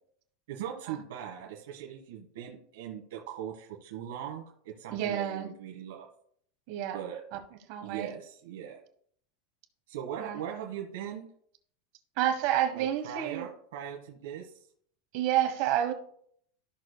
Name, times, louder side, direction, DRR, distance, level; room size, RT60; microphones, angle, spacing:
voice 1, 0.5-6.1 6.9-7.2 7.8-8.8 9.9-11.3 12.7-14.7, right 9 dB, 70° right, 1.2 m, -40 dB
voice 2, 4.9-5.5 6.7-7.0 7.7-8.1 10.2-10.4 12.2-13.5 15.1-15.9, right 11 dB, 45° right, 1.1 m, -29 dB
13.5 x 6.6 x 2.2 m
supercardioid pair, 175°, 0 cm